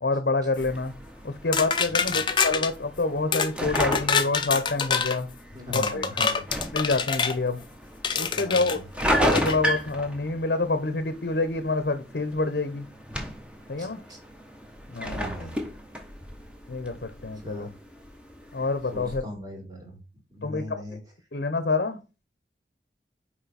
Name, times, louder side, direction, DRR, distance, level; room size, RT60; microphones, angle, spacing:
voice 1, 0.0-0.9 1.2-5.3 5.7-6.0 6.7-7.6 8.1-8.8 9.2-12.9 13.7-14.0 14.9-15.3 16.7-17.7 18.5-19.2 20.4-20.8 21.3-22.0, left 3 dB, 60° left, 10 dB, 0.7 m, -27 dB
sound 1, 0.6-19.2, equal, 5° right, 0.9 m, -34 dB
sound 2, 1.5-2.7 3.3-3.5 3.8-5.2 5.7-7.4 8.0-8.8 9.3-9.6, left 6 dB, 25° left, 0.5 m, -26 dB
voice 2, 1.9-2.2 5.5-6.4 8.3-8.8 13.8-14.2 15.1-15.6 17.4-17.7 18.9-20.0 20.3-21.0, left 1 dB, 20° right, 0 dB, 2.2 m, -39 dB
5.7 x 4.7 x 4.1 m, 0.30 s
head